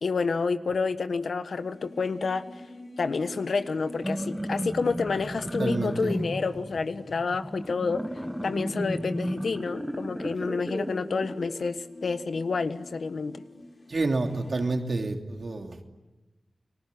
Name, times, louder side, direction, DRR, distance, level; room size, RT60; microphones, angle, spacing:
voice 1, 0.0-2.4 3.0-8.0 8.4-13.4, left 4 dB, 80° left, 10 dB, 1.3 m, -29 dB
sound 1, 1.5-14.8, left 2 dB, 60° left, 6.6 m, -46 dB
sound 2, 3.8-11.7, equal, 5° right, 1.6 m, -34 dB
voice 2, 5.6-6.2 13.9-15.8, right 3 dB, 60° right, 3 dB, 3.0 m, -29 dB
30.0 x 20.5 x 9.7 m, 1.1 s
wide cardioid pair, 65°, 0 cm